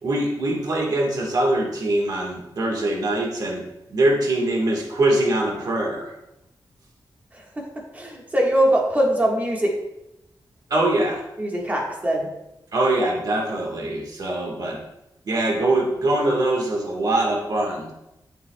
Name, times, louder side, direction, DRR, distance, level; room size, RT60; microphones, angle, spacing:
voice 1, 0.0-3.6 3.9-6.1 10.7-11.2 12.7-14.8 15.2-17.9, right 1 dB, 55° right, -1 dB, 1.5 m, -23 dB
voice 2, 7.9-9.7 11.4-12.3, right 1 dB, 20° right, -1 dB, 1.5 m, -22 dB
12.0 x 7.1 x 2.3 m, 0.90 s
wide cardioid pair, 175°, 8 cm